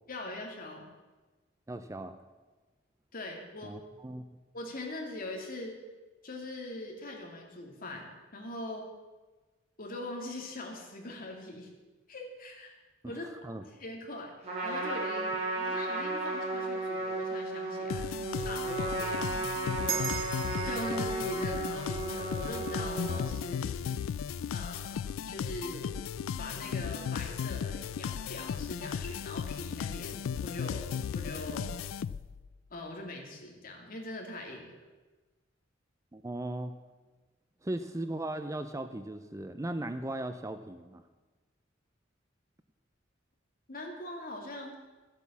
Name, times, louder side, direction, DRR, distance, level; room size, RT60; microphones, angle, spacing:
voice 1, 0.1-0.9 3.1-3.7 4.5-5.8 6.2-8.9 9.8-11.7 12.1-12.8 13.1-13.3 13.5-18.1 18.4-20.1 20.6-23.8 24.5-25.0 25.2-26.0 26.4-31.8 32.7-34.8 43.7-44.7, left 1 dB, 45° left, 1 dB, 2.5 m, -42 dB
voice 2, 1.7-2.2 3.6-4.3 13.0-13.6 36.1-36.7 37.6-41.0, right 1 dB, 15° right, 9 dB, 0.5 m, -37 dB
Trumpet, 14.4-23.2, right 2 dB, 35° right, 4.5 m, -34 dB
sound 1, 17.9-32.5, left 7 dB, 80° left, 0.3 m, -36 dB
sound 2, 19.9-24.6, right 8 dB, 80° right, 0.9 m, -41 dB
13.0 x 8.2 x 7.3 m, 1.3 s
head